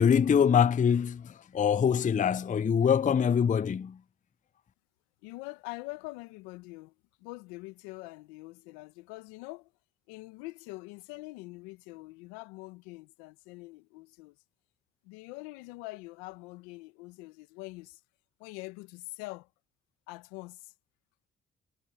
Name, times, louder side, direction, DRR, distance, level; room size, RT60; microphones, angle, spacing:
voice 1, 0.0-4.0, left 7 dB, 25° left, 0.4 m, -24 dB
voice 2, 5.2-9.7 10.1-14.4 15.0-18.0 18.4-19.5 20.1-20.7, left 22 dB, 90° left, 1.4 m, -44 dB
hypercardioid pair, 40°, 32 cm